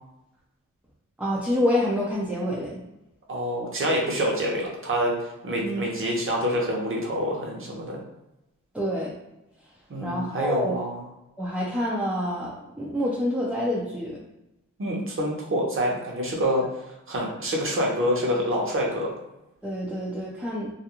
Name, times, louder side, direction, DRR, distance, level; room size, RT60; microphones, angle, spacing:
voice 1, 1.2-2.8 5.6-5.8 8.7-9.1 10.0-10.8 11.4-14.2 19.6-20.7, equal, 5° right, -5 dB, 0.4 m, -27 dB
voice 2, 3.3-8.0 9.9-11.0 14.8-19.1, equal, 40° right, -2 dB, 0.8 m, -27 dB
2.4 x 2.2 x 2.8 m, 0.92 s
wide cardioid pair, 100°, 32 cm